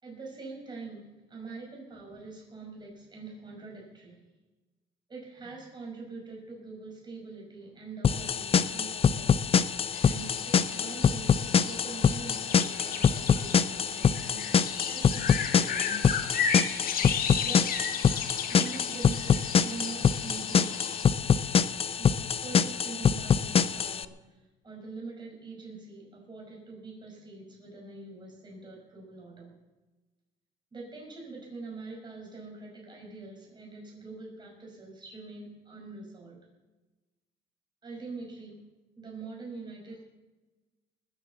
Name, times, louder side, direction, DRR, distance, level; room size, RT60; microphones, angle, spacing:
voice 1, 0.0-4.3 5.1-9.5 10.0-16.1 17.4-17.8 18.5-20.9 22.0-29.6 30.7-36.4 37.8-38.6 39.0-40.0, right 3 dB, 25° right, -2 dB, 5.7 m, -44 dB
sound 1, 8.0-24.0, left 7 dB, 35° left, 0.6 m, -25 dB
sound 2, 9.9-21.0, left 6 dB, 60° left, 1.6 m, -35 dB
20.0 x 7.5 x 7.4 m, 1.1 s
cardioid pair, 110°, 17 cm